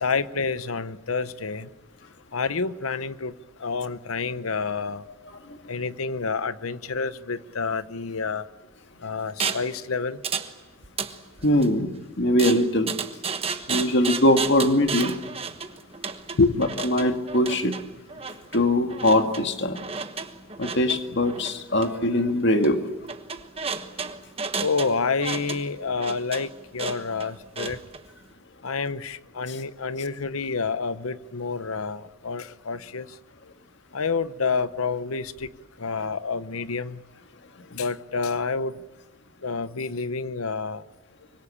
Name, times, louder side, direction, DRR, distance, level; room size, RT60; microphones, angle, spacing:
voice 1, 0.0-1.7 2.3-3.3 3.6-5.1 5.7-8.5 9.0-10.2 16.3-16.7 24.6-27.8 28.6-33.1 33.9-35.5 35.8-37.0 37.7-38.8 39.4-40.8, left 4 dB, 85° left, 0.9 m, -28 dB
voice 2, 5.3-5.6 11.4-11.9 12.2-12.9 13.7-15.2 16.6-17.7 18.5-19.8 20.6-22.8 29.5-29.6, left 1 dB, 55° left, 2.1 m, -22 dB
sound 1, 9.4-9.7 10.2-10.5 10.8-11.7 12.4-28.0, right 5 dB, 25° right, 1.2 m, -33 dB
25.5 x 24.5 x 8.7 m
head